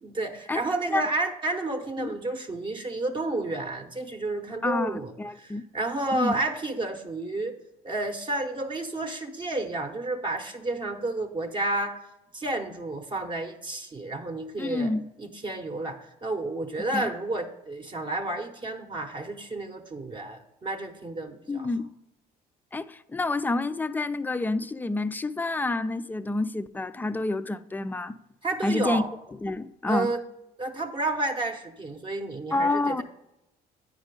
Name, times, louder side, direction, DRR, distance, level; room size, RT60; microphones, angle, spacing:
voice 1, 0.0-7.6 7.8-12.0 12.3-14.9 15.2-21.7 28.4-29.1 29.9-30.2 30.6-33.0, right 2 dB, 30° right, 0.8 m, -31 dB
voice 2, 4.6-5.6 6.1-6.4 14.6-15.0 16.9-17.1 21.5-21.9 22.7-28.2 28.6-29.0 29.4-30.1 32.5-33.0, left 2 dB, 10° left, 0.3 m, -28 dB
8.9 x 5.1 x 5.2 m
cardioid pair, 110°, 17 cm